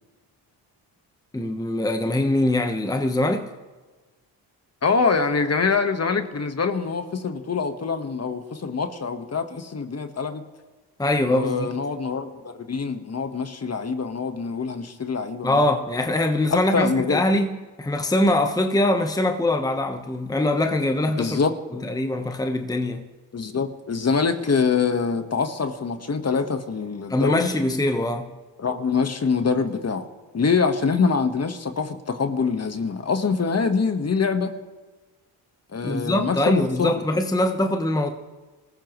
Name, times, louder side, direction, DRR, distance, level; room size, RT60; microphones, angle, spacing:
voice 1, 1.3-3.5 11.0-11.7 15.4-21.4 21.7-23.1 27.1-28.3 35.8-38.1, left 1 dB, 10° left, 1.1 m, -23 dB
voice 2, 4.8-10.4 11.3-15.7 16.5-17.2 21.2-21.5 23.3-27.5 28.6-30.1 30.3-34.6 35.7-37.0, left 5 dB, 35° left, 1.4 m, -24 dB
25.5 x 14.5 x 3.1 m
supercardioid pair, 70°, 43 cm